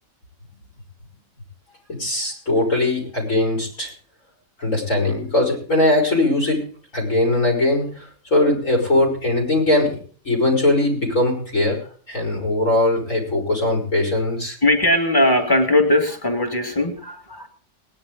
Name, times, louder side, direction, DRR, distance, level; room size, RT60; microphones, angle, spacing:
voice 1, 1.9-3.9 4.6-10.0 10.2-11.8 12.1-14.6, left 2 dB, 80° left, 0 dB, 5.5 m, -20 dB
voice 2, 14.6-17.5, left 1 dB, 15° left, 3 dB, 2.2 m, -19 dB
19.5 x 10.5 x 3.8 m, 0.42 s
omnidirectional pair, 1.3 m